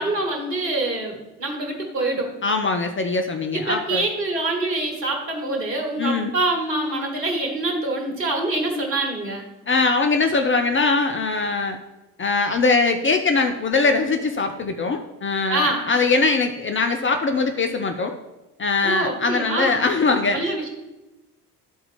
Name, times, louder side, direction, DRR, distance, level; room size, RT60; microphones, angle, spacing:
voice 1, 0.0-2.3 3.7-9.5 15.5-15.9 18.8-19.8 20.3-20.7, right 2 dB, 85° right, 1 dB, 1.2 m, -25 dB
voice 2, 2.4-4.0 6.0-6.3 8.8-8.9 9.7-11.8 12.2-18.2 18.6-20.5, left 3 dB, 25° left, 6 dB, 0.6 m, -21 dB
11.0 x 4.2 x 4.1 m, 1.1 s
figure-of-eight pair, 50°, 48 cm